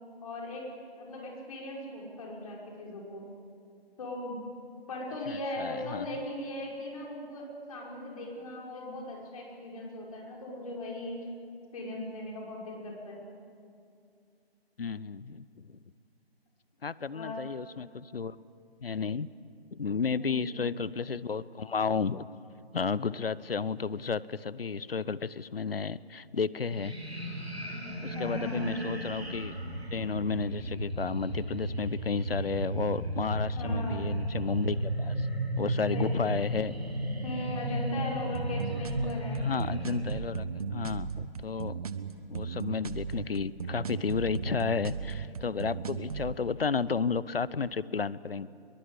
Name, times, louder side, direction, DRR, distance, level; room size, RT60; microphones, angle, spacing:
voice 1, 0.2-0.7 1.0-3.2 4.0-4.4 4.9-11.2 11.7-13.2 17.1-17.4 20.2-20.7 28.0-28.7 33.5-34.1 35.9-36.7 37.2-39.4 43.5-43.6, left 1 dB, 35° left, -2 dB, 6.1 m, -38 dB
voice 2, 5.6-6.1 14.8-15.8 16.8-18.4 18.8-19.3 19.7-22.3 22.7-27.0 28.0-29.5 29.9-35.3 35.6-36.8 39.4-41.8 42.3-48.5, left 5 dB, 65° left, 19 dB, 0.9 m, -32 dB
sound 1, 26.7-40.2, right 1 dB, 90° right, 7.2 m, -34 dB
sound 2, 38.3-46.3, right 6 dB, 35° right, 1.2 m, -36 dB
24.5 x 22.0 x 8.4 m, 2.4 s
figure-of-eight pair, 155°, 31 cm